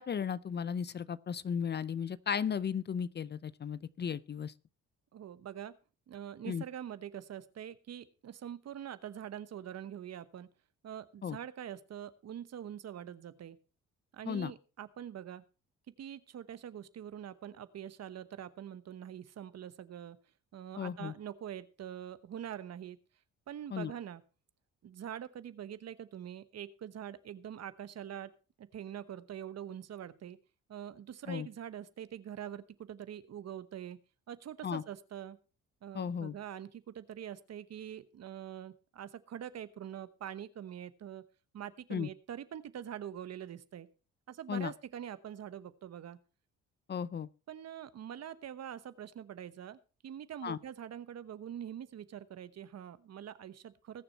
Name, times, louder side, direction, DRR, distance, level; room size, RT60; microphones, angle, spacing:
voice 1, 0.0-4.5 6.5-6.6 11.2-11.4 14.2-14.5 20.8-21.1 23.7-23.9 31.3-31.5 34.6-34.8 35.9-36.3 41.9-42.1 44.5-44.7 46.9-47.3 50.4-50.6, left 7 dB, 35° left, 0.5 m, -35 dB
voice 2, 5.1-5.7 6.1-10.5 10.8-13.6 14.1-15.4 16.0-20.2 20.5-23.0 23.5-24.2 24.8-28.3 28.6-30.4 30.7-34.0 34.3-35.4 35.8-41.2 41.5-43.9 44.3-46.2 47.5-54.0, right 10 dB, 55° right, 1.1 m, -44 dB
20.5 x 6.9 x 4.1 m
cardioid pair, 90°, 30 cm